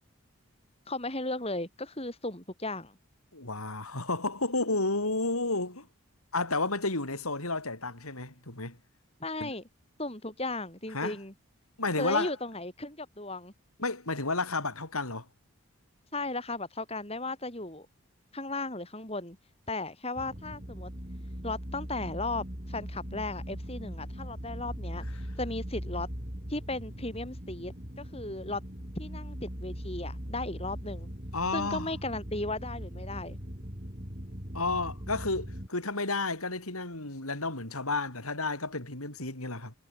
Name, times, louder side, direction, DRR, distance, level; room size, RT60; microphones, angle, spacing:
voice 1, 0.9-3.0 9.2-9.6 10.0-11.3 12.0-13.5 16.1-17.9 18.3-19.4 19.7-20.9 21.4-25.0 25.4-26.1 26.5-28.6 28.9-31.1 31.5-33.4, left 2 dB, 25° left, 5.0 m, -36 dB
voice 2, 3.3-5.9 6.3-8.8 9.4-9.5 10.9-11.2 11.8-12.3 13.8-15.3 31.3-31.9 34.5-39.7, left 3 dB, 90° left, 7.1 m, -31 dB
sound 1, 20.2-35.7, equal, 35° right, 6.2 m, -40 dB
head